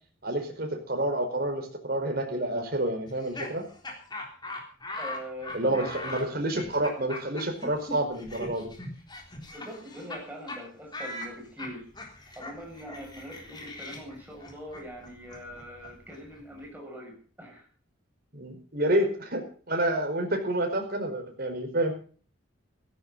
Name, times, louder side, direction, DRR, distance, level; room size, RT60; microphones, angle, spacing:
voice 1, 0.2-3.6 5.5-8.7 18.3-21.9, right 1 dB, 45° right, 4 dB, 5.0 m, -29 dB
Laughter, 3.0-10.2 10.5-10.6 10.9-16.6, left 2 dB, 20° left, 3.6 m, -41 dB
voice 2, 5.0-6.1 9.5-11.9 12.4-17.6, equal, 10° right, 0 dB, 7.3 m, -43 dB
16.5 x 16.0 x 4.1 m, 0.41 s
head